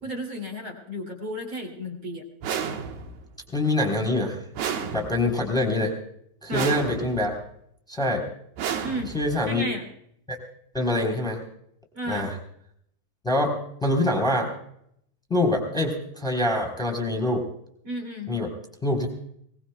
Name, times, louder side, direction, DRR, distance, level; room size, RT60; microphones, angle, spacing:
voice 1, 0.0-2.2 6.5-6.7 8.8-9.1 9.5-9.8 11.9-12.3 17.8-18.3, equal, 35° right, 4 dB, 2.4 m, -33 dB
sound 1, 2.4-3.3 4.5-5.5 6.5-7.3 8.6-9.5, right 7 dB, 70° right, 2.9 m, -32 dB
voice 2, 3.5-4.4 4.9-5.9 6.4-7.3 7.9-8.2 9.1-9.6 10.3-10.4 10.7-11.4 12.1-12.3 13.2-14.5 15.3-17.4 18.3-18.5 18.8-19.1, left 1 dB, ahead, 1 dB, 2.5 m, -25 dB
23.5 x 19.0 x 2.3 m, 0.70 s
omnidirectional pair, 5.6 m